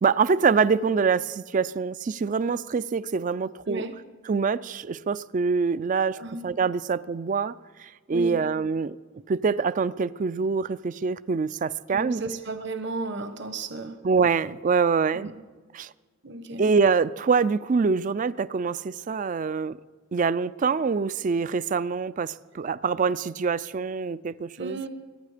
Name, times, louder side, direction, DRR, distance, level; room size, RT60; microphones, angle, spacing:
voice 1, 0.0-3.9 4.3-6.2 6.4-7.5 7.8-9.0 9.3-12.2 14.0-15.3 15.7-15.9 16.6-19.8 20.1-24.8, right 5 dB, 40° right, 0.3 m, -25 dB
voice 2, 11.9-14.0 15.1-15.4 16.2-16.6 24.6-24.9, right 3 dB, 55° right, 1.1 m, -34 dB
23.5 x 10.5 x 5.0 m
head